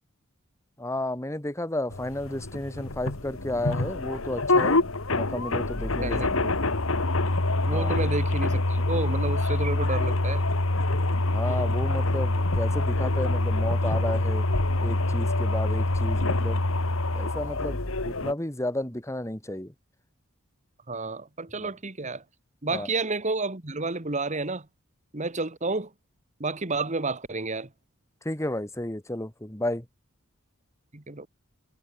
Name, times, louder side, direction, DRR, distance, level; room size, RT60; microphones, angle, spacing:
voice 1, 0.8-6.4 7.7-7.9 11.3-14.5 14.8-16.7 17.1-19.7 21.6-21.7 22.7-22.9 28.2-29.9, left 1 dB, 15° left, 1.9 m, -32 dB
sound 1, 1.9-18.3, left 2 dB, 70° left, 1.9 m, -26 dB
voice 2, 6.0-6.5 7.7-10.4 20.9-22.2 22.6-24.7 25.1-25.9 26.4-27.7 30.9-31.3, right 3 dB, 35° right, 1.7 m, -30 dB
head